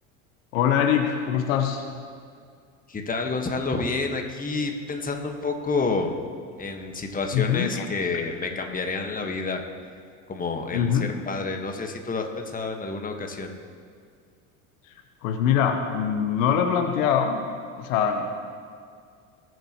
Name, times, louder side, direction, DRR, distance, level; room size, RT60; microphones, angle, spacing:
voice 1, 0.5-1.8 7.3-7.9 8.1-8.2 10.7-11.1 15.2-17.5 17.8-18.3, left 8 dB, 75° left, 5 dB, 1.1 m, -23 dB
voice 2, 2.9-6.2 6.6-9.6 10.3-13.5, left 3 dB, 20° left, 4 dB, 1.4 m, -29 dB
19.5 x 7.8 x 3.0 m, 2.2 s
hypercardioid pair, 80°, 41 cm